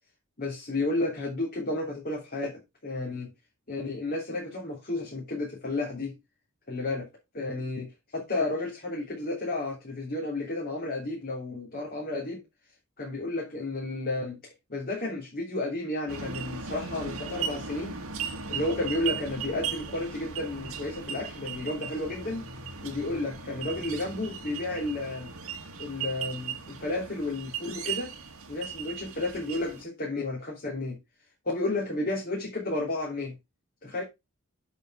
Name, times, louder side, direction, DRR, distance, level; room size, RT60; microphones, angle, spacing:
voice 1, 0.4-3.3 3.7-6.2 6.7-7.1 7.3-12.4 13.0-18.0 18.5-22.5 22.8-25.3 25.8-28.1 28.5-31.0 31.4-33.3 33.8-34.0, left 2 dB, 40° left, 3.3 m, -32 dB
sound 1, 16.1-29.8, right 6 dB, 75° right, 2.2 m, -37 dB
8.1 x 6.7 x 4.9 m
head